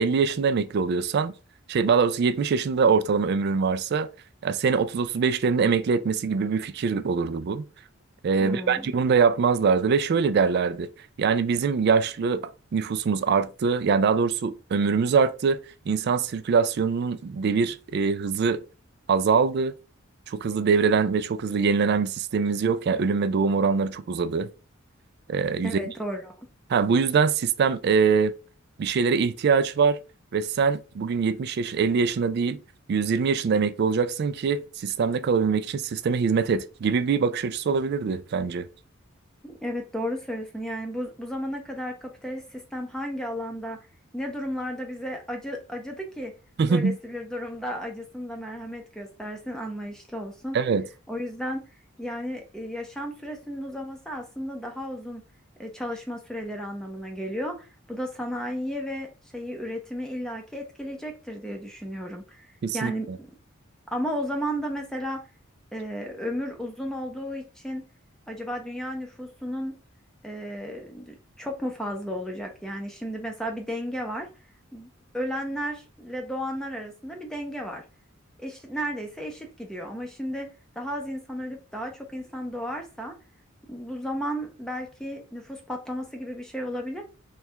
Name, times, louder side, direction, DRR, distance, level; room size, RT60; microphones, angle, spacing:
voice 1, 0.0-1.3 1.7-4.1 4.4-7.6 8.2-10.9 11.2-15.6 15.9-18.6 19.1-19.7 20.3-24.5 25.3-25.8 26.7-28.3 28.8-30.0 30.3-32.6 32.9-38.6 46.6-47.0 50.5-50.9 62.6-63.2, right 5 dB, 50° right, 0.3 m, -23 dB
voice 2, 8.4-8.9 25.6-26.5 39.4-43.8 44.1-46.3 46.7-50.6 51.1-51.6 52.0-55.2 55.6-63.3 63.9-65.2 65.7-67.9 68.3-69.8 70.2-74.3 74.7-74.9 75.1-77.8 78.4-80.5 80.8-83.1 83.7-87.0, equal, 5° left, 0.6 m, -33 dB
3.3 x 2.3 x 4.4 m
head